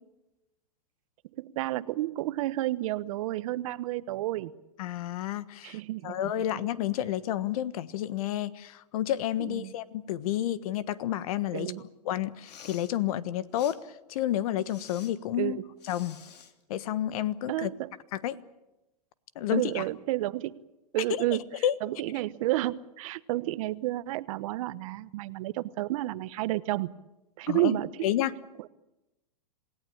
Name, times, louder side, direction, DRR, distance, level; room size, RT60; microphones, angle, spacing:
voice 1, 1.4-4.5 5.6-6.4 9.4-9.7 11.5-11.8 15.4-15.7 17.5-17.9 19.5-20.6 20.9-21.4 21.8-26.9 27.4-27.9 28.6-28.7, right 16 dB, 55° right, 15 dB, 1.1 m, -31 dB
voice 2, 4.8-11.7 12.0-13.8 14.1-15.6 15.9-16.2 16.7-17.7 18.1-18.4 19.3-19.8 21.6-21.7 27.5-28.3, left 12 dB, 60° left, 15 dB, 1.4 m, -30 dB
Respiratory sounds, 12.3-12.9 13.5-13.8 14.6-15.1 15.8-16.5, left 7 dB, 75° left, 2.9 m, -49 dB
27.5 x 17.5 x 8.8 m, 0.98 s
hypercardioid pair, 125°, 21 cm